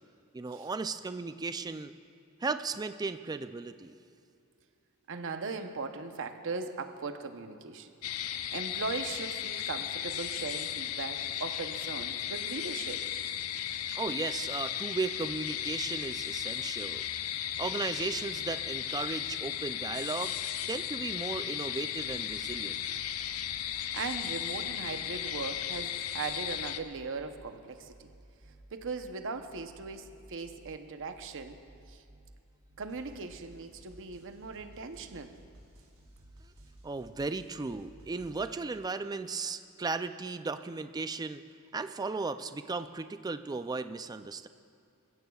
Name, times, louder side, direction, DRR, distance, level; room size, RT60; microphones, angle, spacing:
voice 1, 0.3-1.9 2.4-4.0 13.9-17.1 17.6-20.4 20.7-22.8 36.4-36.5 36.8-41.4 41.7-44.5, right 3 dB, 15° right, 11 dB, 0.3 m, -36 dB
voice 2, 5.1-7.9 8.2-13.0 23.9-28.1 28.7-31.6 31.9-32.0 32.8-35.3, right 4 dB, 60° right, 7 dB, 0.8 m, -39 dB
sound 1, 8.0-26.8, left 10 dB, 70° left, 0.5 m, -35 dB
sound 2, 22.3-22.5 22.9-24.1 24.5-25.8 26.1-27.4 27.8-29.0 29.4-30.7 31.0-32.3 32.7-38.6, right 1 dB, 85° right, 3.1 m, -56 dB
21.0 x 15.5 x 2.3 m, 2.5 s
head